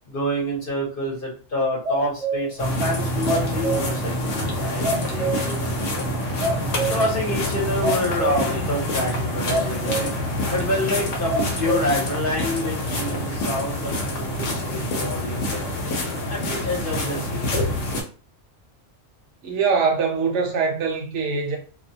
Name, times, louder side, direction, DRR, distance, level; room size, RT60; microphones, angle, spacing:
voice 1, 0.1-6.1 6.9-10.1 10.5-15.6 16.3-17.6, left 1 dB, 50° left, 0.9 m, -27 dB
sound 1, 1.8-2.7 2.9-4.1 4.4-4.5 4.8-5.7 5.9-6.1 6.4-7.2 7.6-8.7 8.9-9.0 9.5-10.3 10.7-10.8 11.3-12.1, right 2 dB, 45° right, 0.5 m, -27 dB
sound 2, 2.6-18.0, left 1 dB, 75° left, 1.0 m, -26 dB
voice 2, 19.4-21.6, right 5 dB, 70° right, 0.9 m, -23 dB
2.4 x 2.1 x 2.6 m
omnidirectional pair, 1.3 m